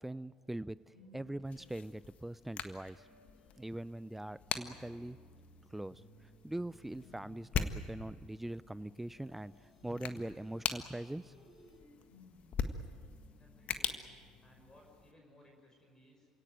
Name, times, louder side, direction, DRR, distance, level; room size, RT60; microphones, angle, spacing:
voice 1, 0.0-3.1 3.6-5.2 5.7-11.7, right 1 dB, 5° right, 19 dB, 0.6 m, -42 dB
sound 1, 0.9-2.4 2.9-15.1, left 1 dB, 90° left, 5.8 m, -62 dB
sound 2, 1.4-15.1, left 7 dB, 50° left, 1.6 m, -43 dB
voice 2, 13.4-14.0 14.4-16.3, equal, 20° left, 1 dB, 5.5 m, -62 dB
27.5 x 17.5 x 9.3 m, 2.1 s
hypercardioid pair, 60°, 3 cm